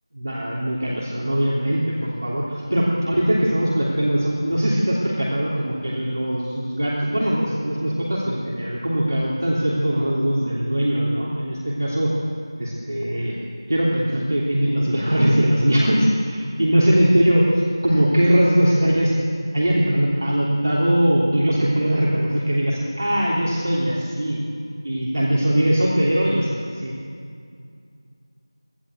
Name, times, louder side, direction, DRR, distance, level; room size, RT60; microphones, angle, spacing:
voice 1, 0.2-12.1 12.6-13.4 13.7-17.5 17.8-19.2 19.5-24.4 24.8-26.9, equal, 40° right, -5 dB, 3.3 m, -21 dB
25.5 x 15.5 x 8.0 m, 2.3 s
figure-of-eight pair, 180°, 3 cm